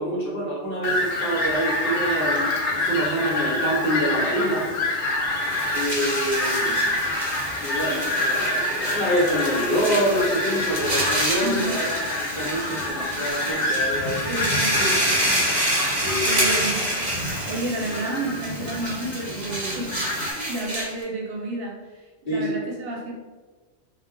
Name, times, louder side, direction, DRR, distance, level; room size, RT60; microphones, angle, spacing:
voice 1, 0.0-2.4 2.7-4.7 5.7-6.8 7.6-14.2 16.0-16.4 22.3-22.5, equal, 55° left, -5 dB, 1.0 m, -26 dB
Fowl, 0.8-20.3, left 1 dB, 80° left, 1.0 m, -27 dB
sound 1, 5.2-21.0, right 1 dB, 20° right, 0.9 m, -28 dB
voice 2, 11.4-11.8 14.3-15.3 16.2-16.8 17.3-23.1, right 2 dB, 65° right, -2 dB, 0.7 m, -31 dB
2.3 x 2.0 x 3.6 m, 1.3 s
omnidirectional pair, 1.2 m